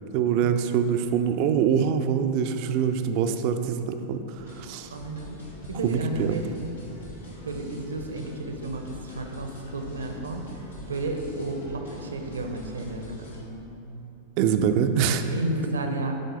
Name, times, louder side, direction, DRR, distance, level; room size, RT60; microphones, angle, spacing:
voice 1, 0.1-4.9 5.8-6.5 14.4-15.2, right 8 dB, 45° right, 8 dB, 0.4 m, -24 dB
sound 1, 4.4-13.4, left 1 dB, 75° left, 1.3 m, -43 dB
voice 2, 4.9-5.4 5.7-6.5 7.0-7.1 7.4-14.1 14.8-15.0 15.3-16.1, right 2 dB, 70° right, 4 dB, 0.7 m, -33 dB
10.5 x 3.9 x 4.0 m, 3.0 s
figure-of-eight pair, 90°, 0 cm